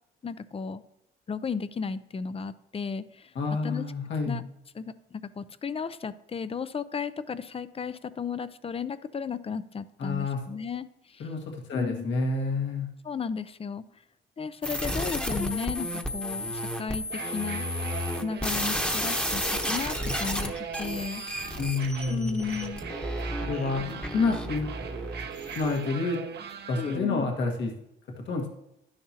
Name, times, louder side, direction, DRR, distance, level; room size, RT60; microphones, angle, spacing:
voice 1, 0.2-0.8 1.3-3.3 3.6-3.8 4.2-4.4 4.7-11.3 11.7-12.1 13.0-13.8 14.4-17.6 18.2-20.5 20.8-21.2 22.1-22.8 26.8-27.3, left 5 dB, 30° left, 14 dB, 0.6 m, -34 dB
voice 2, 3.4-4.4 10.0-10.4 11.2-12.9 21.6-22.4 23.5-24.7 25.6-26.2 26.7-27.7 28.3-28.5, left 3 dB, 70° left, 1 dB, 1.8 m, -28 dB
sound 1, 14.6-25.8, left 1 dB, 5° left, 1.1 m, -32 dB
sound 2, 17.0-27.0, right 7 dB, 55° right, 1.0 m, -40 dB
11.5 x 10.5 x 2.9 m, 0.82 s
cardioid pair, 90°, 20 cm